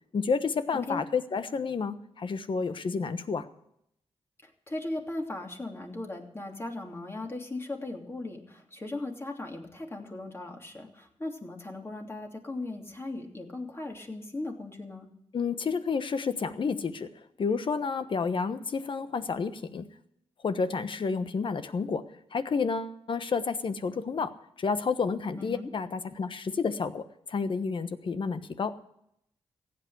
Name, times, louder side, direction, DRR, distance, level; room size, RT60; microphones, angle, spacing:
voice 1, 0.1-3.5 15.3-17.1 17.4-19.9 20.4-22.0 22.3-24.3 24.6-28.7, left 5 dB, 55° left, 11 dB, 1.2 m, -30 dB
voice 2, 4.4-15.1 25.3-25.7, left 2 dB, 25° left, 1 dB, 3.1 m, -38 dB
15.5 x 8.8 x 8.1 m, 0.75 s
cardioid pair, 75°, 10 cm